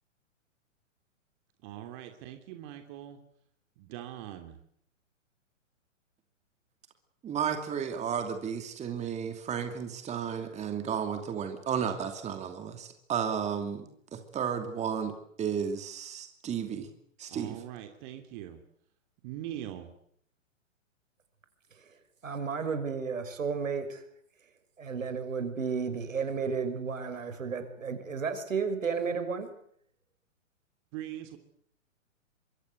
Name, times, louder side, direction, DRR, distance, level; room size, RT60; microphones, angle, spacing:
voice 1, 1.6-3.2 3.8-4.6 17.3-18.6 19.2-19.9 30.9-31.4, right 12 dB, 35° right, 6 dB, 3.1 m, -42 dB
voice 2, 7.2-16.9 17.2-17.6, right 7 dB, 15° right, 6 dB, 2.7 m, -33 dB
voice 3, 22.2-24.0 24.8-29.5, right 5 dB, 75° right, 10 dB, 6.0 m, -33 dB
26.0 x 23.5 x 8.1 m, 0.67 s
hypercardioid pair, 125°, 39 cm